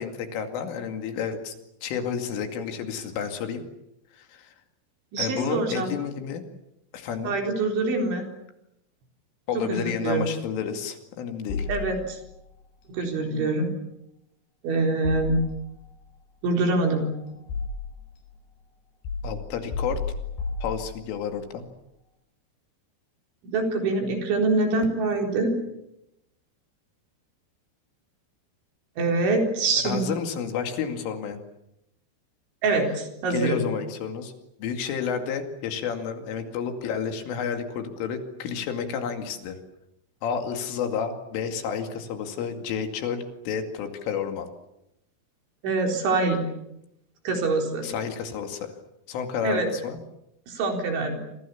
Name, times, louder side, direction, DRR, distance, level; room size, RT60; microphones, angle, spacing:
voice 1, 0.0-1.5 1.8-3.6 4.1-4.5 5.2-6.4 6.9-7.4 9.5-11.7 19.2-20.0 20.6-21.7 29.8-31.4 33.3-34.3 34.6-39.6 40.2-44.5 47.8-48.7 49.1-50.0, left 7 dB, 70° left, 6 dB, 4.8 m, -30 dB
voice 2, 5.1-5.9 7.2-8.2 9.7-10.3 11.7-12.2 12.9-13.7 14.6-15.4 16.4-17.1 23.5-25.5 29.0-30.0 32.6-33.6 45.6-46.4 47.2-47.9 49.4-49.7 50.5-51.2, right 3 dB, 65° right, 3 dB, 6.4 m, -25 dB
sound 1, 11.5-12.4 15.0-15.9 16.8-18.1 19.0-21.3, left 4 dB, 55° left, 6.5 m, -33 dB
27.5 x 26.5 x 7.2 m, 0.84 s
omnidirectional pair, 6.0 m